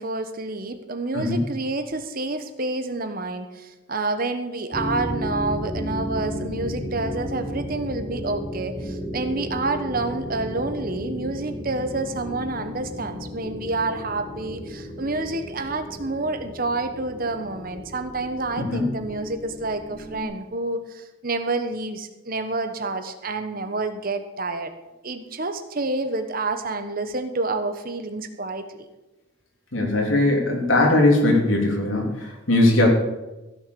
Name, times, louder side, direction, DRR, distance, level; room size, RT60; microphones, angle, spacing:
voice 1, 0.0-24.7 25.0-28.9 29.9-30.0, right 2 dB, 45° right, 8 dB, 1.2 m, -28 dB
sound 1, 4.7-20.2, equal, 20° left, 1.7 m, -34 dB
voice 2, 18.6-18.9 29.7-32.1 32.5-32.9, left 2 dB, 85° left, 0 dB, 3.3 m, -19 dB
15.0 x 7.2 x 6.9 m, 1.0 s
head